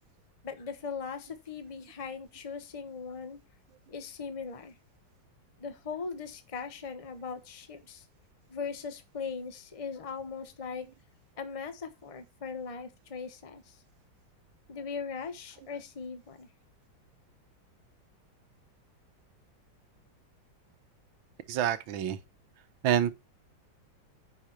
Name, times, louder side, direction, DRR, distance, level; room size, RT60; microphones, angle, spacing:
voice 1, 0.4-3.4 3.9-4.7 5.6-8.0 8.5-10.9 11.4-13.8 14.7-16.5, left 5 dB, 20° left, 1.1 m, -39 dB
voice 2, 21.5-22.2 22.8-23.1, right 10 dB, 85° right, 1.7 m, -27 dB
10.0 x 5.5 x 4.5 m
omnidirectional pair, 2.1 m